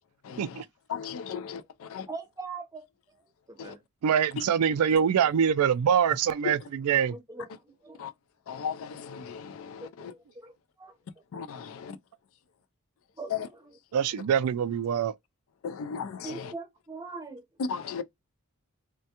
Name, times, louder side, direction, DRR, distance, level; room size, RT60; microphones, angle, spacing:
voice 1, 0.2-0.6 0.9-2.1 3.6-3.7 6.4-6.6 8.0-8.1 8.5-10.1 11.3-12.0 13.3-13.5 15.6-16.5 17.6-18.0, left 6 dB, 65° left, 0.4 m, -36 dB
voice 2, 2.1-2.9 3.5-3.8 7.1-7.5 7.8-8.0 9.8-10.9 13.2-13.3 16.2-17.4, right 3 dB, 15° right, 0.6 m, -41 dB
voice 3, 4.0-7.2 13.9-15.1, right 8 dB, 80° right, 0.3 m, -24 dB
3.3 x 2.2 x 2.8 m
head